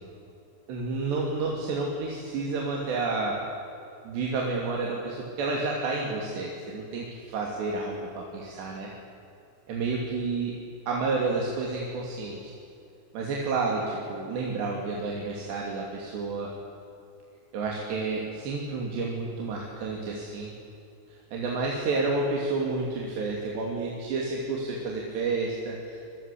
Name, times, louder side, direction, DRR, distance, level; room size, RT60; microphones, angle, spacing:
voice 1, 0.7-3.4 4.0-8.9 9.7-10.5 10.9-12.5 13.1-16.5 17.5-20.5 21.1-26.3, right 3 dB, 75° right, -2 dB, 5.0 m, -30 dB
25.5 x 22.5 x 8.6 m, 2.7 s
omnidirectional pair, 4.9 m